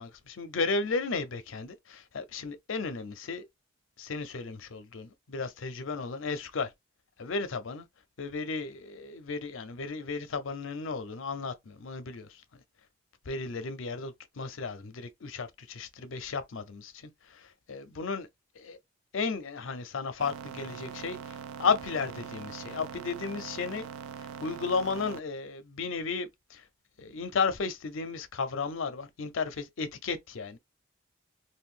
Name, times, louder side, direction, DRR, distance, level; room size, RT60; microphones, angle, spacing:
voice 1, 0.0-3.5 4.0-6.7 7.2-7.9 8.2-12.4 13.3-18.3 18.6-18.8 19.1-23.9 24.2-26.7 27.0-30.6, left 4 dB, 70° left, 0.5 m, -34 dB
sound 1, 20.2-25.2, right 7 dB, 85° right, 0.3 m, -42 dB
2.6 x 2.2 x 3.7 m
head